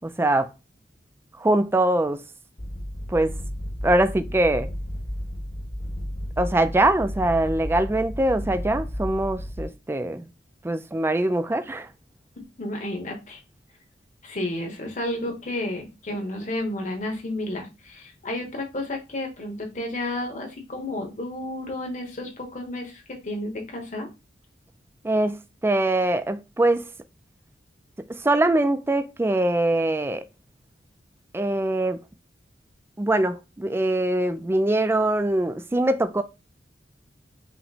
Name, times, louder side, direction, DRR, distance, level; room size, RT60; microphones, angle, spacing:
voice 1, 0.0-0.5 1.4-2.2 3.1-3.3 3.8-4.7 6.4-10.3 10.6-11.9 25.0-26.8 28.2-30.3 31.3-32.0 33.0-36.2, right 1 dB, 15° right, 0.3 m, -23 dB
sound 1, 2.6-9.6, equal, 60° left, 1.9 m, -33 dB
voice 2, 12.6-13.4 14.2-24.1, left 1 dB, 45° left, 1.1 m, -31 dB
5.6 x 2.1 x 4.0 m
head